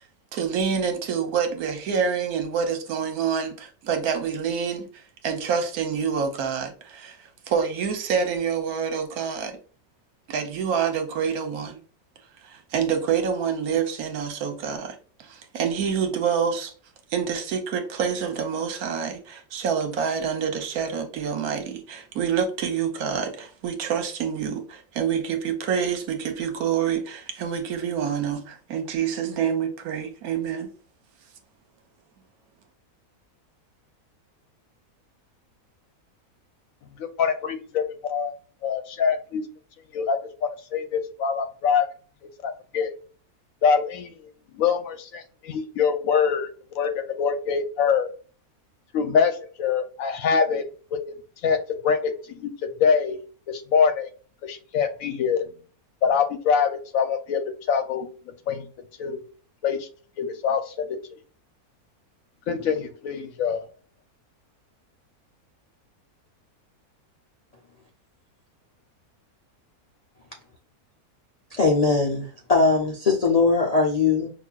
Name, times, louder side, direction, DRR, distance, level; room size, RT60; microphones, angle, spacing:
voice 1, 0.3-4.9 5.2-9.6 10.3-11.8 12.4-16.7 17.1-30.7, right 7 dB, 75° right, 1.3 m, -27 dB
voice 2, 37.0-38.3 38.6-39.4 39.9-41.9 42.4-42.9 43.6-44.1 44.5-46.5 46.7-48.1 48.9-50.6 50.9-51.0 51.4-51.6 51.8-52.5 52.8-53.2 53.5-54.1 54.4-55.5 56.0-58.1 58.5-58.7 59.0-59.2 59.6-59.9 60.2-61.2 62.5-63.6, left 6 dB, 70° left, 1.0 m, -24 dB
voice 3, 71.5-74.3, left 4 dB, 55° left, 0.4 m, -20 dB
5.8 x 2.5 x 2.3 m
omnidirectional pair, 1.6 m